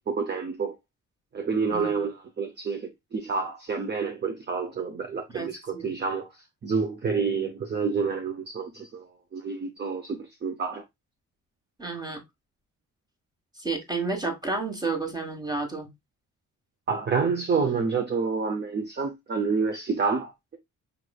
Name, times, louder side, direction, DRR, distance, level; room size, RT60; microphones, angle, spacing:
voice 1, 0.1-0.8 1.3-6.3 6.6-9.1 9.3-10.8 16.9-20.6, right 5 dB, 30° right, 0.6 m, -28 dB
voice 2, 1.7-2.0 5.3-5.9 11.8-12.2 13.6-15.9, right 3 dB, 10° right, 1.4 m, -31 dB
5.2 x 3.0 x 2.3 m
cardioid pair, 100°, 33 cm